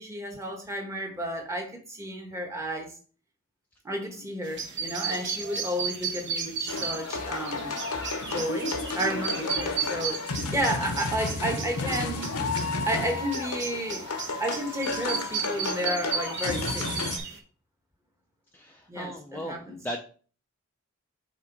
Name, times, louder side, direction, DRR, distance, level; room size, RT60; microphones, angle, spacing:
voice 1, 0.0-2.9 3.8-7.8 8.3-12.3 12.9-14.1 14.4-16.9 18.9-19.8, equal, 15° right, 1.1 m, -32 dB
sound 1, 4.4-17.4, right 6 dB, 55° right, 1.0 m, -35 dB
sound 2, 6.7-17.2, left 3 dB, 90° left, 0.9 m, -32 dB
voice 2, 18.5-20.0, equal, 10° left, 0.4 m, -37 dB
5.7 x 3.7 x 4.6 m
head